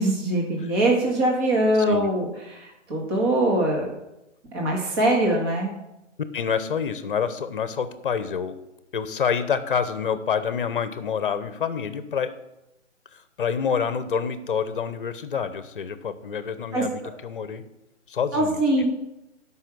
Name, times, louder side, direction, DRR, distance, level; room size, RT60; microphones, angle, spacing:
voice 1, 0.0-3.9 4.5-5.7 16.7-16.8 18.3-18.9, right 1 dB, 20° right, -1 dB, 1.8 m, -22 dB
voice 2, 6.3-8.5 8.9-12.3 13.1-17.6 18.1-18.9, left 7 dB, 45° left, 12 dB, 1.0 m, -27 dB
13.5 x 5.7 x 6.2 m, 0.91 s
hypercardioid pair, 160°, 37 cm